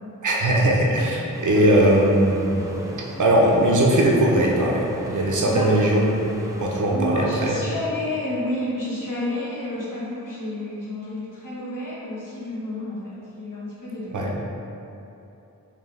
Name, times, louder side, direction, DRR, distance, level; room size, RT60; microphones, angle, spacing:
voice 1, 0.2-2.9 3.2-6.2 6.6-7.6 14.1-14.3, right 1 dB, 65° right, -2 dB, 0.7 m, -19 dB
sound 1, 1.3-6.8, right 1 dB, 10° right, 0.4 m, -39 dB
voice 2, 6.9-14.2, left 1 dB, 70° left, -7 dB, 1.2 m, -30 dB
4.9 x 2.8 x 3.2 m, 2.9 s
wide cardioid pair, 110°, 33 cm